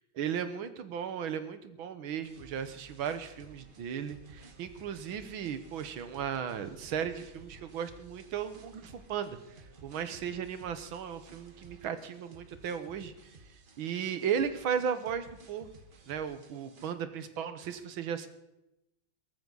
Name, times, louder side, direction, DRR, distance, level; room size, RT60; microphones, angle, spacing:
voice 1, 0.2-9.6 9.8-13.3 13.8-15.7 16.1-18.3, right 8 dB, 80° right, 11 dB, 1.9 m, -36 dB
sound 1, 2.2-16.9, right 3 dB, 35° right, 1.0 m, -55 dB
18.5 x 14.0 x 4.0 m, 0.90 s
omnidirectional pair, 2.2 m